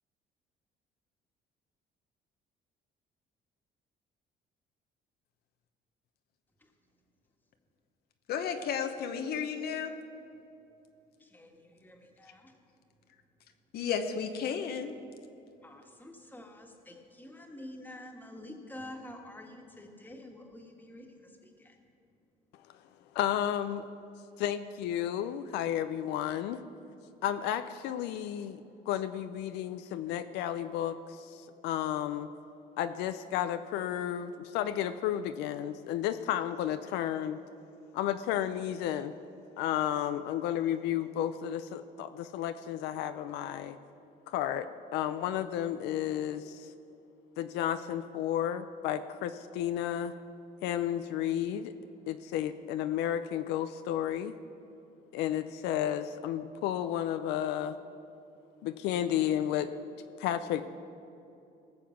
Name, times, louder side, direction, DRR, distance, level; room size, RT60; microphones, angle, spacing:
voice 1, 8.3-9.9 13.7-14.9, left 7 dB, 70° left, 6 dB, 1.0 m, -33 dB
voice 2, 11.2-12.5 15.6-21.8, left 1 dB, 10° left, 2 dB, 1.7 m, -48 dB
voice 3, 23.1-23.9 24.4-26.6 27.2-32.3 32.8-37.4 37.9-39.1 39.6-43.8 44.3-46.7 47.4-50.1 50.6-51.7 52.1-54.3 55.1-57.8 58.6-59.7 60.2-60.6, left 11 dB, 90° left, 10 dB, 0.5 m, -32 dB
19.0 x 7.2 x 5.9 m, 2.7 s
cardioid pair, 110°, 17 cm